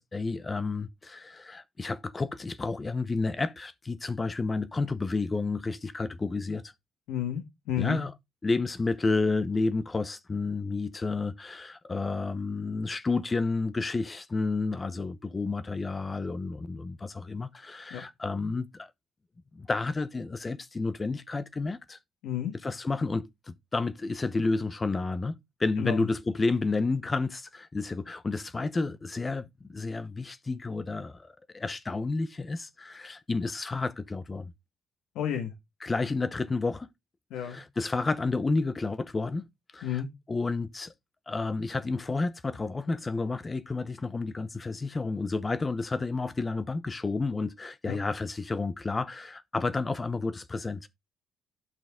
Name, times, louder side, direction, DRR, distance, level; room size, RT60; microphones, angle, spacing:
voice 1, 0.0-6.6 7.8-8.1 8.4-18.9 19.5-22.0 22.6-34.5 35.8-36.9 37.4-39.5 39.7-40.0 40.3-40.9 41.3-50.9, left 3 dB, 25° left, 0.8 m, -31 dB
voice 2, 7.1-8.0 17.9-18.0 22.2-22.5 25.8-26.1 35.1-35.5 37.3-37.6 39.8-40.1 47.9-48.0, left 10 dB, 80° left, 1.6 m, -31 dB
9.1 x 6.0 x 3.6 m
supercardioid pair, 75°, 0 cm